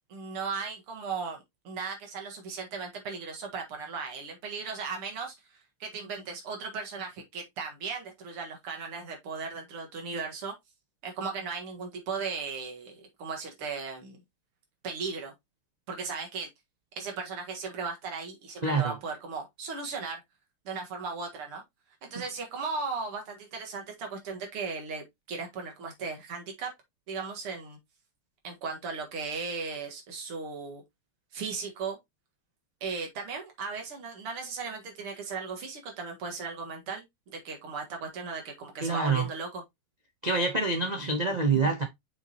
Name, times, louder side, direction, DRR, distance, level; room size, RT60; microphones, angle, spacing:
voice 1, 0.1-10.5 11.0-14.2 14.8-15.3 15.9-16.5 17.0-20.2 20.7-21.6 22.0-26.7 27.1-27.8 28.4-30.8 31.3-32.0 32.8-39.6, right 5 dB, 85° right, 2.7 m, -37 dB
voice 2, 18.6-19.0 38.8-39.3 40.2-41.8, right 3 dB, 60° right, 0.4 m, -26 dB
6.3 x 5.7 x 2.9 m
omnidirectional pair, 2.4 m